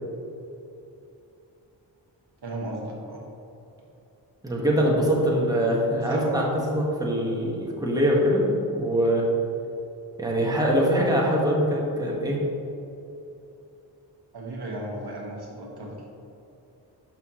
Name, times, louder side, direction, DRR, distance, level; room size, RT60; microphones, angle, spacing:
voice 1, 2.4-3.2 6.1-6.5 14.3-16.1, right 1 dB, 60° right, -2 dB, 1.6 m, -35 dB
voice 2, 4.4-9.3 10.2-12.4, equal, 10° right, -3 dB, 1.6 m, -23 dB
10.5 x 5.9 x 3.1 m, 2.8 s
cardioid pair, 70°, 44 cm